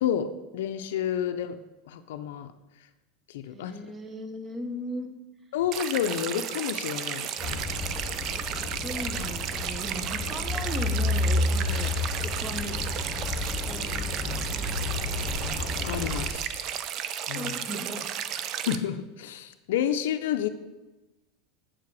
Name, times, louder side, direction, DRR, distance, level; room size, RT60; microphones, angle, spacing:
voice 1, 0.0-1.6 1.9-2.5 3.3-3.7 5.5-7.7 15.6-16.7 17.3-17.5 18.6-20.5, left 9 dB, 80° left, 8 dB, 0.4 m, -30 dB
voice 2, 3.4-5.1 8.3-8.4 8.8-11.9 12.2-12.8 13.5-14.7 17.3-18.1, right 1 dB, 20° right, 7 dB, 0.8 m, -38 dB
sound 1, 5.7-18.8, right 9 dB, 45° right, 0.4 m, -33 dB
sound 2, 7.4-16.3, left 3 dB, 25° left, 1.0 m, -31 dB
7.5 x 4.8 x 4.7 m, 1.1 s
supercardioid pair, 125°, 0 cm